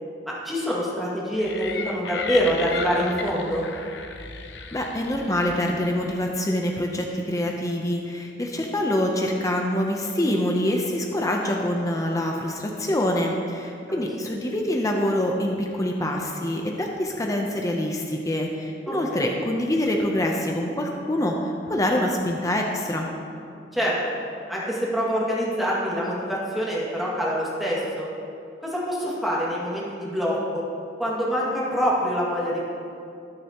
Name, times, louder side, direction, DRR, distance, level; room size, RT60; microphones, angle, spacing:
voice 1, 0.3-3.7 14.0-14.1 18.9-19.3 23.7-23.9 24.5-28.1 28.6-30.6 31.0-32.6, equal, ahead, -7 dB, 2.1 m, -25 dB
sound 1, 1.4-6.2, left 5 dB, 70° left, 0.7 m, -35 dB
voice 2, 4.7-23.1, left 1 dB, 20° left, 1 dB, 0.7 m, -25 dB
19.0 x 6.7 x 3.0 m, 2.5 s
head